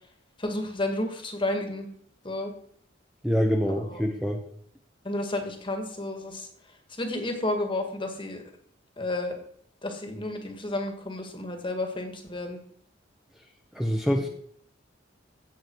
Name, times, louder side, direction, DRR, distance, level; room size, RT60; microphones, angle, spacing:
voice 1, 0.4-1.9 2.2-2.5 3.9-4.0 5.0-6.5 7.0-8.4 9.0-9.4 9.8-12.6 14.1-14.3, left 1 dB, 25° left, 5 dB, 2.0 m, -31 dB
voice 2, 3.2-4.4 13.7-14.3, equal, ahead, 1 dB, 1.2 m, -25 dB
16.5 x 7.4 x 4.7 m, 0.65 s
head